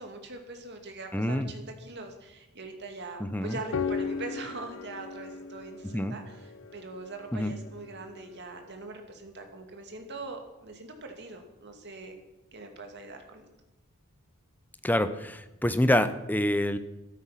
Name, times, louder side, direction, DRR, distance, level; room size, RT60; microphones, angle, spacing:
voice 1, 0.0-12.2 12.5-13.4, right 3 dB, 50° right, 4 dB, 2.3 m, -42 dB
voice 2, 1.1-1.5 3.2-3.6 5.9-6.2 7.3-7.5 14.8-16.8, left 1 dB, 10° left, 11 dB, 0.7 m, -26 dB
sound 1, 3.5-8.5, left 5 dB, 60° left, 0.7 m, -37 dB
14.0 x 12.0 x 5.8 m, 1.0 s
head